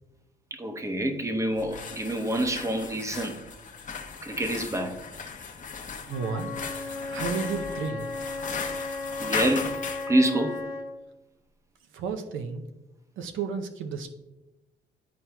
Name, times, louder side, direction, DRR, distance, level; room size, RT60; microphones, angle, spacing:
voice 1, 0.5-3.4 4.2-5.0 9.2-10.6, right 1 dB, 15° right, 6 dB, 0.8 m, -27 dB
sound 1, 1.5-10.1, left 5 dB, 40° left, 0.7 m, -37 dB
Wind instrument woodwind instrument, 6.1-11.0, left 3 dB, 70° left, 1.3 m, -35 dB
voice 2, 6.1-6.5 7.1-8.1 11.9-12.6 13.2-14.1, right 5 dB, 80° right, 6 dB, 0.6 m, -32 dB
10.5 x 4.3 x 2.3 m, 1.0 s
cardioid pair, 90°, 20 cm